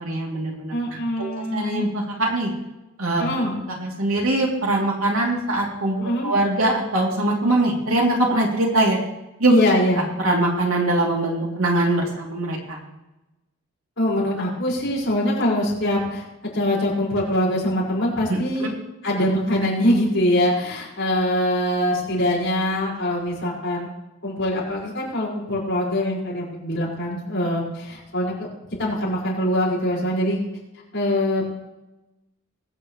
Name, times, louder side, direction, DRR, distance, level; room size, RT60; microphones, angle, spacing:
voice 1, 0.0-2.5 3.0-3.3 3.7-6.0 6.2-9.0 9.4-9.5 10.2-12.8 18.3-18.7, right 2 dB, 75° right, -1 dB, 3.0 m, -22 dB
voice 2, 0.7-1.9 3.2-3.6 6.0-6.3 9.5-10.0 14.0-16.2 16.5-18.7 19.0-23.9 24.2-28.3 28.8-30.4 30.9-31.5, left 1 dB, 55° left, -5 dB, 5.2 m, -23 dB
21.5 x 8.2 x 3.2 m, 1.0 s
head